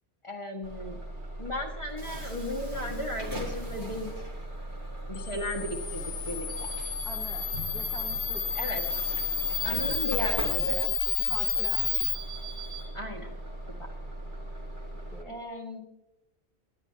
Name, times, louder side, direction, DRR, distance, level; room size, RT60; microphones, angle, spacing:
voice 1, 0.2-1.0 1.4-4.1 5.1-6.7 8.5-8.8 9.6-10.9 12.9-13.3 13.8-13.9 15.2-15.8, left 1 dB, 25° left, 2 dB, 1.7 m, -35 dB
Bus / Alarm, 0.6-15.2, right 2 dB, 45° right, 2.5 m, -38 dB
sound 1, 3.2-11.9, equal, 90° right, 7.3 m, -50 dB
Camera, 5.1-12.1, left 8 dB, 65° left, 1.1 m, -31 dB
voice 2, 7.0-7.5 7.7-8.6 11.2-11.9 15.1-15.4, left 1 dB, ahead, 1 dB, 1.3 m, -44 dB
23.0 x 11.5 x 2.9 m, 0.88 s
omnidirectional pair, 1.2 m